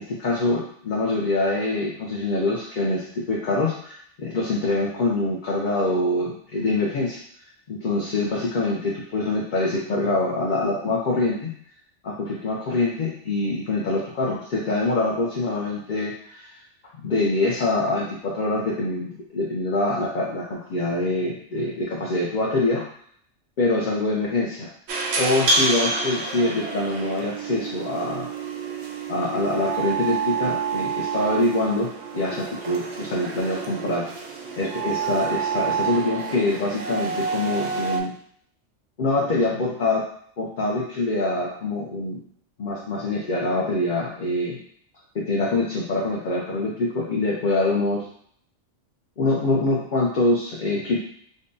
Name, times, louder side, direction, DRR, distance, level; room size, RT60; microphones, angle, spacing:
voice 1, 0.0-7.2 7.7-11.5 12.0-16.6 17.0-22.9 23.6-24.7 25.2-28.3 29.1-31.9 32.1-34.1 34.6-38.1 39.0-40.0 40.4-42.2 42.6-44.6 45.1-48.1 49.2-51.0, left 2 dB, 50° left, -3 dB, 0.6 m, -25 dB
sound 1, 24.9-38.0, right 4 dB, 70° right, 0.8 m, -28 dB
5.2 x 2.2 x 2.6 m, 0.63 s
omnidirectional pair, 1.3 m